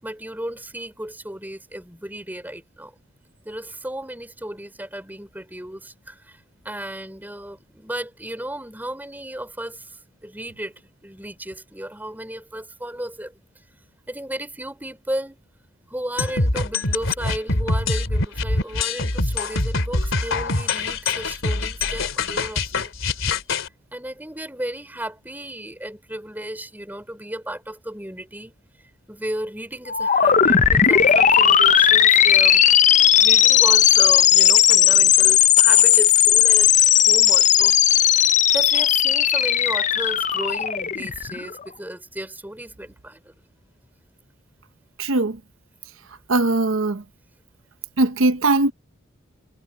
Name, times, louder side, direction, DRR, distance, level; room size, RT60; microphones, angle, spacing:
voice 1, 0.0-3.0 3.4-13.3 14.1-15.4 15.9-22.9 23.9-28.5 29.1-43.3, right 1 dB, 10° right, 5.4 m, -34 dB
sound 1, 16.2-23.7, left 3 dB, 85° left, 2.9 m, -24 dB
sound 2, 29.9-41.6, left 9 dB, 35° left, 0.6 m, -16 dB
voice 2, 45.0-45.4 46.3-47.0 48.0-48.7, right 2 dB, 85° right, 0.9 m, -20 dB
head